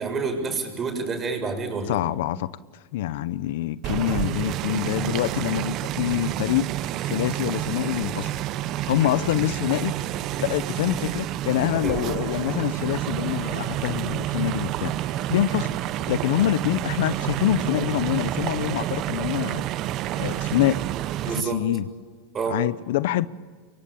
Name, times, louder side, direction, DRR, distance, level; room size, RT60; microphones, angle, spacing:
voice 1, 0.0-2.0 11.8-12.0 21.2-21.6 22.3-22.6, right 4 dB, 25° right, 7.2 m, -28 dB
voice 2, 1.9-6.7 7.0-8.3 8.9-10.0 10.4-19.6 20.1-20.9 21.3-21.9 22.5-23.3, left 13 dB, 70° left, 0.9 m, -26 dB
sound 1, 3.8-21.4, right 13 dB, 45° right, 0.9 m, -29 dB
29.5 x 23.5 x 8.6 m
supercardioid pair, 120°, 0 cm